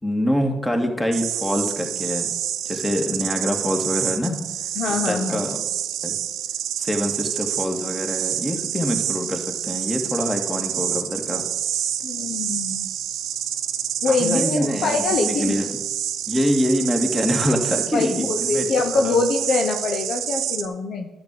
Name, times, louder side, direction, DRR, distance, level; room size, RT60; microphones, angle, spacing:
voice 1, 0.0-2.3 2.7-4.4 4.9-5.6 6.0-6.2 6.8-11.4 14.0-15.8 16.3-18.7 18.9-19.2, equal, 15° left, 3 dB, 2.2 m, -25 dB
sound 1, 1.1-20.7, right 10 dB, 75° right, 0.7 m, -28 dB
voice 2, 4.8-5.4 12.0-12.9 14.0-15.6 17.9-21.1, left 4 dB, 65° left, 5 dB, 0.9 m, -24 dB
10.5 x 6.3 x 7.7 m, 1.1 s
hypercardioid pair, 50°, 0 cm